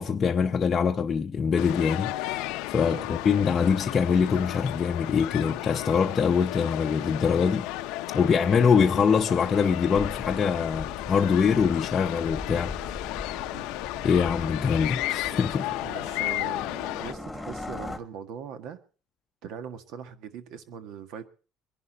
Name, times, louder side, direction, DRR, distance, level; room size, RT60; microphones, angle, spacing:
voice 1, 0.0-7.7 8.1-13.2 14.0-15.7, left 6 dB, 25° left, 0.7 m, -24 dB
sound 1, 1.6-17.1, left 17 dB, 85° left, 0.7 m, -33 dB
sound 2, 9.9-18.0, left 2 dB, 5° left, 1.5 m, -40 dB
voice 2, 15.8-16.7 17.0-18.8 19.4-21.3, right 7 dB, 70° right, 1.7 m, -40 dB
23.5 x 11.0 x 4.0 m
cardioid pair, 150°, 0 cm